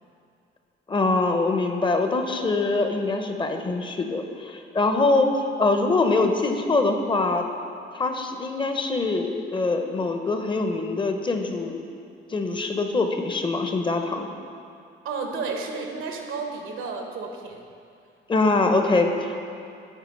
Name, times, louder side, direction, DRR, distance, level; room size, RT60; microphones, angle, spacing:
voice 1, 0.9-7.4 7.9-11.8 12.3-14.3 18.3-19.4, left 3 dB, 25° left, 5 dB, 0.6 m, -23 dB
voice 2, 15.0-17.6, right 4 dB, 80° right, 3 dB, 0.9 m, -32 dB
8.1 x 4.1 x 5.2 m, 2.4 s
cardioid pair, 90°, 20 cm